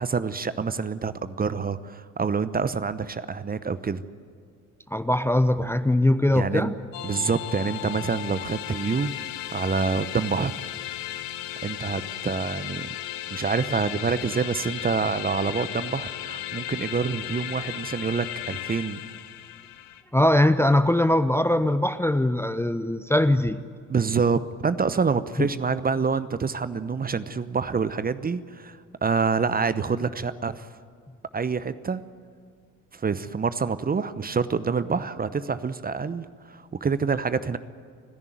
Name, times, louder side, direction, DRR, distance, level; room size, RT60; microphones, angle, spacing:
voice 1, 0.0-4.0 6.3-6.7 7.0-9.1 9.5-10.5 11.6-12.9 13.3-19.0 23.9-30.6 31.3-32.0 32.9-37.6, right 5 dB, 20° right, 14 dB, 0.9 m, -27 dB
voice 2, 4.9-6.7 20.1-23.6 25.4-25.5, left 1 dB, 5° left, 12 dB, 0.7 m, -21 dB
sound 1, 6.9-20.0, left 13 dB, 70° left, 1.2 m, -35 dB
29.0 x 11.0 x 9.4 m, 2.2 s
figure-of-eight pair, 55°, 40 cm